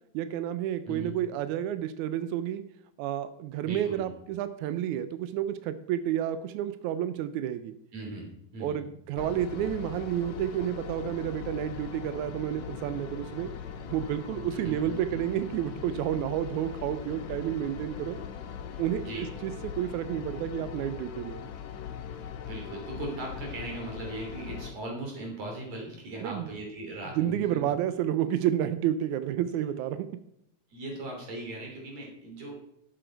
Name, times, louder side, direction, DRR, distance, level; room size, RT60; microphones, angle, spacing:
voice 1, 0.1-2.6 3.0-7.7 8.6-13.5 13.9-18.2 18.8-21.5 26.2-26.5 27.2-30.1, right 11 dB, 80° right, 12 dB, 1.7 m, -30 dB
voice 2, 3.6-4.1 7.9-8.8 14.5-14.8 19.0-19.2 22.4-27.6 30.7-32.5, right 2 dB, 50° right, 0 dB, 4.1 m, -39 dB
sound 1, 9.2-24.7, left 7 dB, 70° left, 1.9 m, -40 dB
11.5 x 7.7 x 4.5 m, 0.76 s
omnidirectional pair, 4.0 m